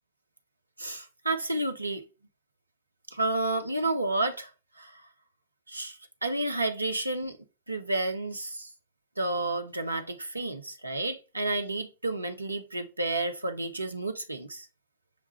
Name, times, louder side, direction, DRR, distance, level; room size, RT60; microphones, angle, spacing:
voice 1, 0.8-2.0 3.1-4.5 4.8-5.0 5.7-7.4 7.7-8.7 9.2-14.7, right 2 dB, 85° right, 0.6 m, -31 dB
6.8 x 2.3 x 3.0 m
figure-of-eight pair, 90°, 0 cm